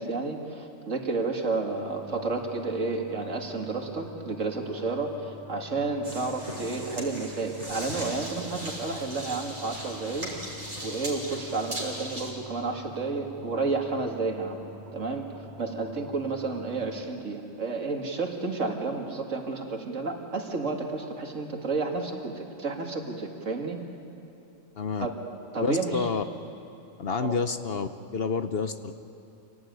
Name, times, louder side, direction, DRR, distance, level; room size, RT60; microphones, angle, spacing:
voice 1, 0.0-10.3 10.8-14.6 14.9-23.8 25.0-25.1 25.5-26.1 27.2-27.4, right 3 dB, 70° right, 2 dB, 2.5 m, -31 dB
sound 1, 1.7-17.0, left 1 dB, 15° right, 2.7 m, -46 dB
sound 2, 6.0-12.3, right 1 dB, 30° right, 5.0 m, -38 dB
voice 2, 24.8-25.1 25.6-26.2 27.0-28.9, left 5 dB, 55° left, 9 dB, 0.9 m, -29 dB
26.5 x 18.0 x 9.4 m, 2.8 s
omnidirectional pair, 1.4 m